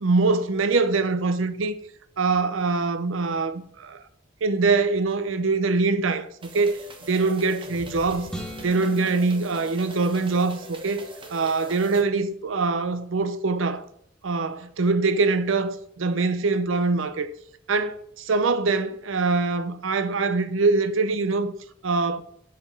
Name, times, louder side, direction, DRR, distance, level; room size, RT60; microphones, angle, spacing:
voice 1, 0.0-1.7 2.2-4.0 4.4-6.3 6.5-6.8 7.1-8.3 8.6-11.0 11.3-13.9 14.2-17.3 17.7-21.5 21.8-22.2, right 3 dB, 85° right, 0.6 m, -23 dB
sound 1, 6.4-12.0, right 1 dB, 25° right, 1.0 m, -42 dB
sound 2, 8.3-10.6, equal, 5° left, 1.3 m, -41 dB
6.7 x 5.1 x 5.3 m
head